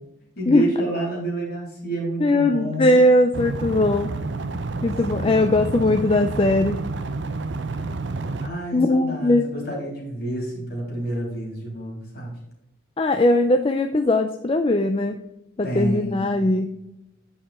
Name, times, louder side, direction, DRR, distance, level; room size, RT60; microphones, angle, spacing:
voice 1, 0.4-3.0 5.1-5.8 8.4-12.4 15.6-16.5, right 1 dB, 50° left, -1 dB, 3.4 m, -29 dB
voice 2, 2.2-4.1 4.8-6.8 8.7-9.5 13.0-15.2 15.6-16.8, left 1 dB, 30° left, 7 dB, 0.4 m, -19 dB
sound 1, 3.3-8.5, right 3 dB, 65° right, 0.6 m, -29 dB
8.9 x 5.7 x 4.2 m, 0.87 s
head